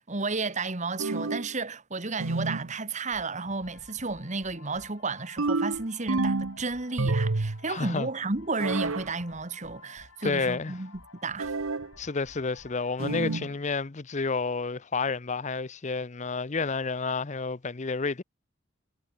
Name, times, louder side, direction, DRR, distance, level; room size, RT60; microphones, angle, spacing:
voice 1, 0.0-10.9 11.2-11.5, right 3 dB, 35° right, 1.6 m, -32 dB
sound 1, 1.0-1.5 2.2-2.7 5.4-6.6 7.0-7.6 8.6-9.1 11.4-11.9 13.0-13.5, right 3 dB, 85° right, 1.0 m, -28 dB
sound 2, 3.1-13.6, left 3 dB, 85° left, 6.8 m, -53 dB
voice 2, 7.7-8.1 10.2-10.7 12.0-18.2, left 4 dB, 35° left, 0.7 m, -30 dB
head